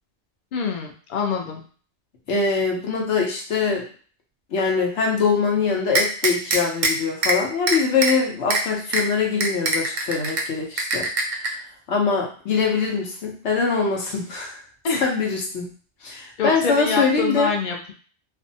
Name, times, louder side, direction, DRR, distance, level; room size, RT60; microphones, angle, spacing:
voice 1, 0.5-1.6 14.8-15.1 16.4-17.9, left 5 dB, 55° left, 1 dB, 0.6 m, -25 dB
voice 2, 2.3-3.8 4.5-11.1 11.9-14.6 15.0-15.7 16.0-17.5, left 5 dB, 80° left, 0 dB, 1.0 m, -23 dB
sound 1, 5.9-6.9 7.2-7.4 7.7-8.1 8.5-8.6 8.9-9.0 9.4-10.4 10.8-11.5, right 3 dB, 55° right, 0.5 m, -21 dB
2.6 x 2.2 x 2.6 m, 0.41 s
omnidirectional pair, 1.2 m